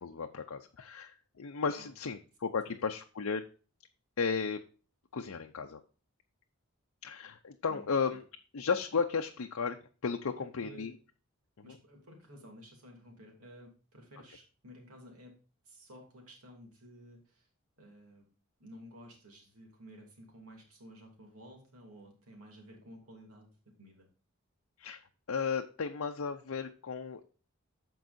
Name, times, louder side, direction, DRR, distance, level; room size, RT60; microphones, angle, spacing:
voice 1, 0.0-3.4 4.2-4.6 5.1-5.8 7.0-8.2 8.5-9.8 10.0-10.9 24.8-25.0 25.3-27.2, left 5 dB, 75° left, 4 dB, 0.6 m, -34 dB
voice 2, 10.3-10.9 11.6-15.3 15.6-17.5 17.8-18.3 18.6-23.5 23.8-24.1, equal, 85° right, 1 dB, 2.7 m, -53 dB
14.0 x 4.7 x 2.6 m, 0.38 s
head